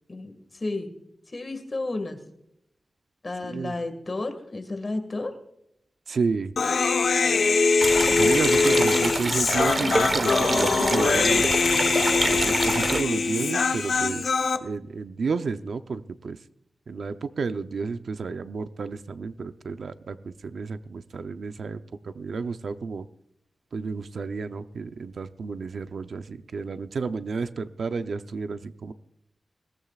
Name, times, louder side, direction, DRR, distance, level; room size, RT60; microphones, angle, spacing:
voice 1, 0.1-0.9 1.3-2.2 3.2-5.3 8.1-9.3, left 2 dB, 35° left, 6 dB, 1.9 m, -33 dB
voice 2, 3.4-3.8 6.1-6.5 8.2-11.5 12.3-14.3 14.6-16.4 16.9-23.1 23.7-28.9, right 4 dB, 75° right, 10 dB, 0.6 m, -31 dB
Human voice, 6.6-14.6, left 4 dB, 80° left, 1.0 m, -22 dB
sound 1, 7.8-13.0, right 2 dB, 35° right, 1.2 m, -27 dB
21.0 x 18.0 x 2.4 m, 0.77 s
wide cardioid pair, 150°, 0 cm